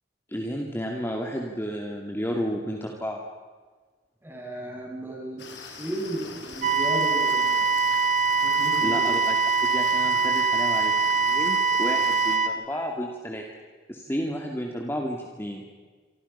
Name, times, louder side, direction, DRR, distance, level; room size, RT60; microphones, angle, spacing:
voice 1, 0.3-3.2 8.8-9.4 9.7-13.4 13.9-15.7, equal, 15° left, 0 dB, 2.4 m, -32 dB
voice 2, 4.2-7.7 8.4-9.1 14.1-14.2, right 1 dB, 10° right, 0 dB, 6.6 m, -35 dB
sound 1, 5.4-12.4, left 4 dB, 70° left, 4.3 m, -42 dB
sound 2, 6.6-12.5, right 4 dB, 40° right, 1.6 m, -23 dB
27.5 x 26.0 x 5.7 m, 1.4 s
head